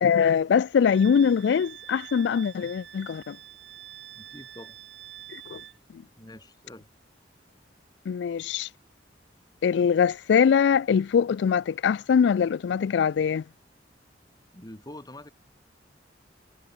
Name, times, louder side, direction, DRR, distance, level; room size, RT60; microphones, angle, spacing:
voice 1, 0.0-3.4 5.3-5.6 8.1-8.7 9.6-13.4, left 7 dB, 65° left, 0.3 m, -22 dB
Wind instrument woodwind instrument, 0.9-5.8, right 11 dB, 70° right, 1.1 m, -46 dB
voice 2, 4.1-4.8 6.2-6.9 14.5-15.3, left 1 dB, 20° left, 3.6 m, -45 dB
head